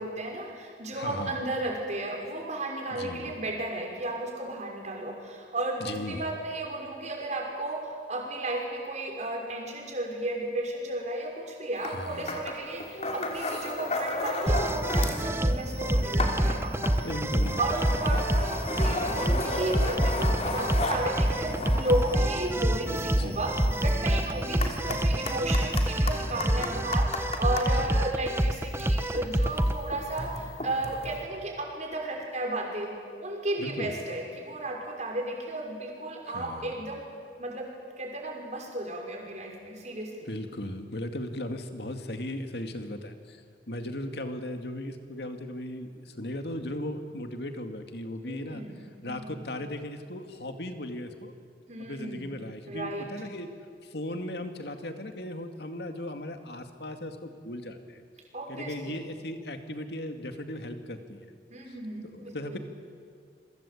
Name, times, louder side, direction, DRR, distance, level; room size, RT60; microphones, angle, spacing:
voice 1, 0.0-17.1 17.6-23.5 23.8-32.9 33.2-37.1 37.4-37.7 38.0-40.3 48.2-49.4 51.7-52.3 52.7-53.1 58.3-58.9 61.5-62.6, right 2 dB, 40° right, 1 dB, 6.0 m, -34 dB
voice 2, 0.9-1.4 2.9-3.4 5.8-6.3 11.8-12.4 17.0-17.7 23.1-23.4 27.7-28.0 33.6-33.9 36.2-36.7 40.3-51.3 51.8-53.5 53.8-58.0 58.5-61.3 61.7-61.8 62.0-62.6, left 1 dB, 65° left, 6 dB, 2.3 m, -37 dB
sound 1, 11.8-12.0 12.3-15.3 15.6-27.7 28.5-31.2, left 2 dB, 40° left, 3.2 m, -34 dB
sound 2, 14.5-29.8, right 1 dB, 15° right, 1.0 m, -27 dB
28.0 x 23.5 x 8.6 m, 2.2 s
head